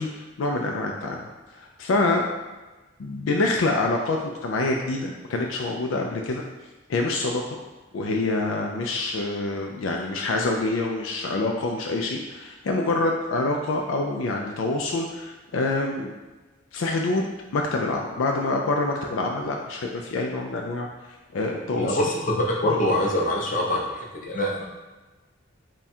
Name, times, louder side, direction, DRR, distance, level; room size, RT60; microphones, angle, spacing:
voice 1, 0.0-2.2 3.0-6.4 6.9-7.6 7.9-16.1 16.7-20.9 21.3-22.0 22.6-22.8, left 2 dB, 75° left, 1 dB, 0.4 m, -26 dB
voice 2, 21.7-24.6, left 1 dB, 40° left, -2 dB, 0.7 m, -24 dB
3.6 x 2.3 x 4.2 m, 1.2 s
head